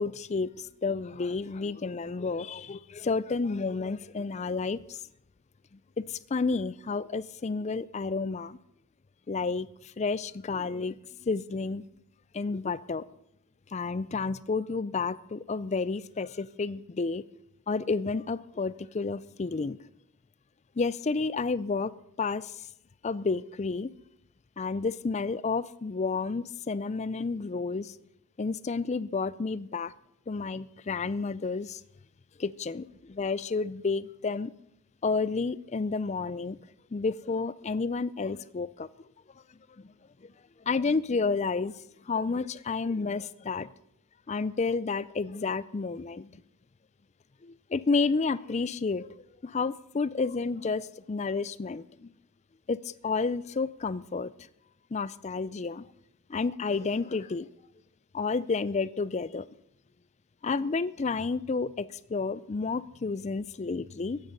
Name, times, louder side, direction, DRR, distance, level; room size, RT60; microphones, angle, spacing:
voice 1, 0.0-5.0 6.0-8.6 9.3-11.8 12.3-13.0 13.7-17.2 17.7-19.8 20.8-21.9 22.2-22.5 23.0-23.9 24.6-27.9 28.4-29.9 30.3-31.8 32.4-34.5 35.0-36.6 36.9-38.9 40.7-41.7 42.0-43.7 44.3-46.4 47.4-49.1 49.4-52.1 52.7-54.3 54.9-55.9 56.3-57.5 58.1-59.5 60.4-64.2, left 4 dB, 30° left, 18 dB, 0.4 m, -30 dB
14.5 x 10.5 x 5.3 m, 0.76 s
head